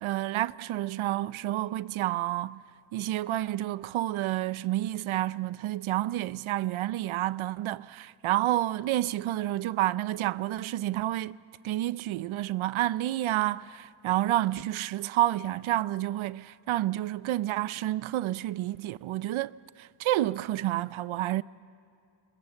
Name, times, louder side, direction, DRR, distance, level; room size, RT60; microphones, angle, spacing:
voice 1, 0.0-2.6 2.9-11.4 11.6-21.4, right 14 dB, 85° right, 0.6 m, -29 dB
27.5 x 21.5 x 7.2 m
wide cardioid pair, 140°, 47 cm